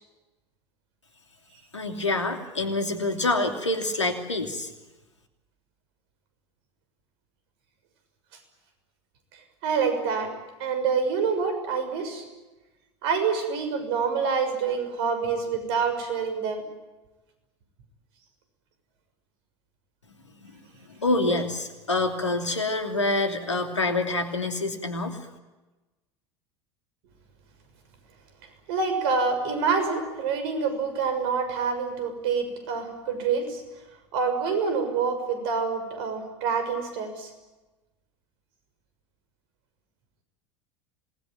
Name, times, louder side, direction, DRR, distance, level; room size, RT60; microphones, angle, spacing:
voice 1, 1.7-4.7 20.5-20.6 21.0-25.2, left 2 dB, 90° left, 5 dB, 2.9 m, -26 dB
voice 2, 9.6-10.3 10.6-12.2 13.0-16.6 28.7-33.6 34.1-37.3, right 5 dB, 60° right, 7 dB, 6.5 m, -26 dB
27.0 x 20.0 x 9.1 m, 1.1 s
figure-of-eight pair, 75°, 15 cm